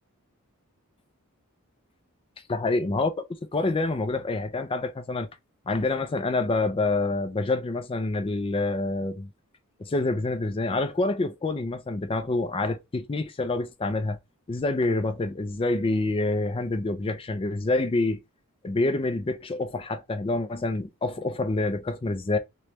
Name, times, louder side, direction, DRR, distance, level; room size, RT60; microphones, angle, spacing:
voice 1, 2.5-5.3 5.7-9.3 9.8-14.2 14.5-18.2 18.6-22.4, left 2 dB, 25° left, 0.4 m, -27 dB
3.1 x 3.0 x 2.9 m
head